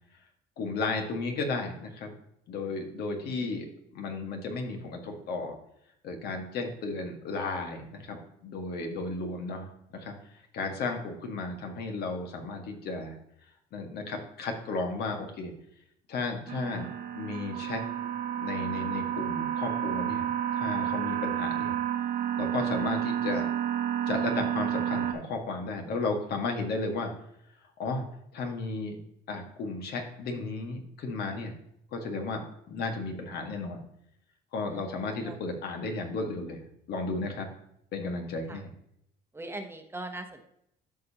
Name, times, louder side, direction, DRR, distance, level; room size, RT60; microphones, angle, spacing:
voice 1, 0.6-2.1 2.5-3.7 3.9-5.5 6.0-10.1 10.5-13.2 13.7-15.5 16.1-16.9 17.1-17.8 18.3-20.3 20.5-21.7 22.4-23.5 24.1-27.1 27.8-28.1 28.3-29.0 29.3-31.5 31.9-32.4 32.7-33.8 34.5-36.6 36.9-37.5 37.9-38.7, left 3 dB, 70° left, 3 dB, 1.8 m, -34 dB
voice 2, 2.7-3.6 34.7-35.4 38.5-38.6 39.3-40.5, right 2 dB, 15° right, 5 dB, 1.0 m, -42 dB
sound 1, 16.5-25.1, right 10 dB, 60° right, 1.1 m, -30 dB
13.0 x 5.2 x 2.9 m, 0.74 s
cardioid pair, 110°, 17 cm